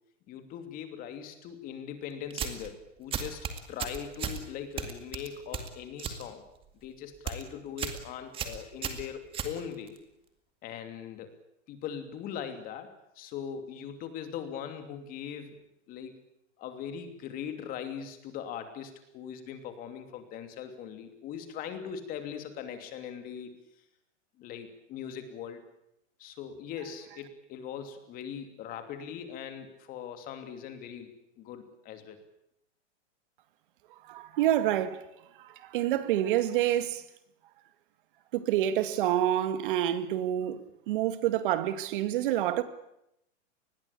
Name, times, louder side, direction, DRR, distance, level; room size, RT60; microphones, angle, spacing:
voice 1, 0.3-6.4 6.8-10.0 10.6-11.3 11.7-15.6 15.9-16.2 16.6-23.6 24.4-25.6 26.2-32.2, left 8 dB, 25° left, 2.9 m, -40 dB
sound 1, 2.3-2.7 3.1-4.4 4.8-6.2 6.5-6.9 7.1-7.4 7.8-8.0 8.3-10.0, right 7 dB, 15° right, 2.1 m, -35 dB
voice 2, 34.1-35.0 35.4-37.0 38.3-40.6 40.9-42.6, right 12 dB, 45° right, 2.1 m, -28 dB
28.0 x 20.5 x 8.5 m
supercardioid pair, 165°, 36 cm